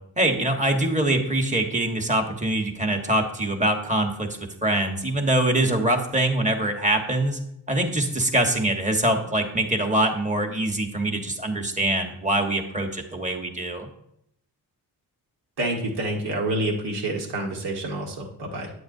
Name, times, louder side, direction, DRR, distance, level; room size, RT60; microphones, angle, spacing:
voice 1, 0.2-4.3 4.6-7.4 7.7-13.9, right 1 dB, 20° right, 4 dB, 1.2 m, -24 dB
voice 2, 15.6-18.7, right 1 dB, 85° right, 0 dB, 1.7 m, -28 dB
8.7 x 8.2 x 2.7 m, 0.75 s
cardioid pair, 90°, 39 cm